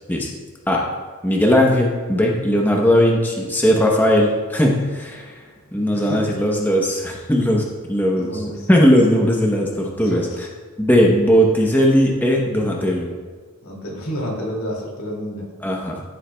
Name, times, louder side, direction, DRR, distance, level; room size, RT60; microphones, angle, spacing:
voice 1, 1.2-5.4 5.7-8.4 8.7-10.2 10.8-13.1 15.6-16.0, equal, 10° left, -1 dB, 0.8 m, -18 dB
voice 2, 5.9-6.3 8.1-8.7 10.0-10.5 13.6-15.5, equal, 75° left, -2 dB, 2.4 m, -29 dB
14.5 x 7.3 x 2.3 m, 1.5 s
head